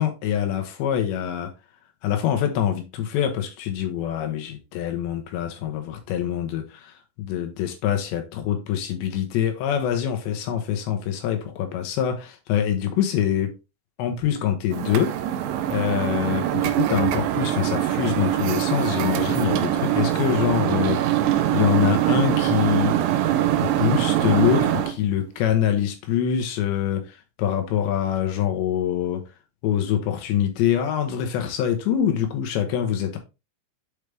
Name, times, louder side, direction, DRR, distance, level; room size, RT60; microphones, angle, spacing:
voice 1, 0.0-1.5 2.0-13.5 14.0-15.1 15.7-23.0 23.6-29.2 29.6-33.2, left 9 dB, 75° left, 2.8 m, -25 dB
sound 1, 14.7-24.9, right 12 dB, 80° right, 2.6 m, -23 dB
8.0 x 4.9 x 3.4 m
omnidirectional pair, 5.9 m